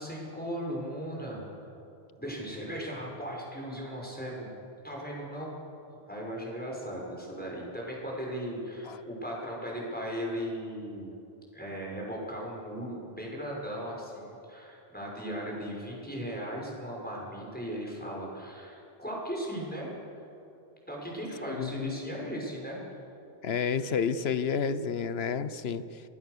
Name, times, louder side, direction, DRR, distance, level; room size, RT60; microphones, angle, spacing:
voice 1, 0.0-1.4 2.2-4.5 4.8-5.6 5.9-11.1 11.5-20.0 20.9-22.8, equal, 10° left, -3 dB, 6.4 m, -37 dB
voice 2, 21.5-22.3 23.4-26.0, left 6 dB, 70° left, 13 dB, 1.1 m, -31 dB
27.0 x 20.0 x 6.9 m, 2.7 s
omnidirectional pair, 1.1 m